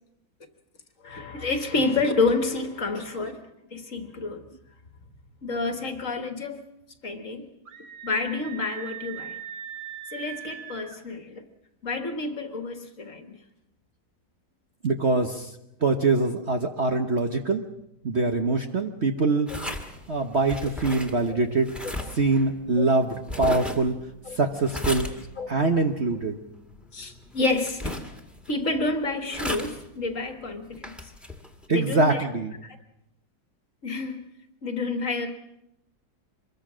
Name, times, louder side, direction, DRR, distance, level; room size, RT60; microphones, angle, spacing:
voice 1, 1.0-3.4 3.7-4.5 5.4-6.6 7.0-7.5 8.0-9.4 10.1-11.4 11.8-13.4 22.8-22.9 24.3-24.4 24.9-25.0 25.4-25.5 26.9-28.0 28.5-30.9 31.7-32.3 32.6-32.8 33.8-34.2 34.6-35.3, left 3 dB, 45° left, 7 dB, 1.8 m, -29 dB
Screaming, 7.7-11.0, right 10 dB, 85° right, 2.5 m, -40 dB
voice 2, 14.8-15.5 15.8-17.6 18.0-19.5 20.1-21.7 22.1-23.9 24.3-25.1 25.5-26.4 31.7-32.6, right 3 dB, 40° right, 5 dB, 1.2 m, -24 dB
sound 1, 19.5-31.6, left 1 dB, ahead, 1.9 m, -37 dB
25.0 x 21.5 x 6.3 m, 0.86 s
omnidirectional pair, 2.0 m